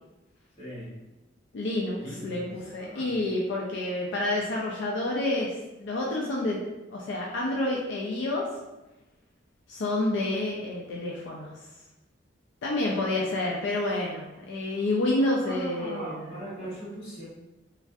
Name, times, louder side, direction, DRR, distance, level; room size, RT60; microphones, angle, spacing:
voice 1, 0.6-0.9 1.9-3.2 15.4-17.2, right 1 dB, 30° left, -8 dB, 1.2 m, -39 dB
voice 2, 1.5-6.6 6.9-8.5 9.7-11.5 12.6-16.2, left 2 dB, 65° left, -2 dB, 0.4 m, -29 dB
3.1 x 2.4 x 2.6 m, 1.0 s
head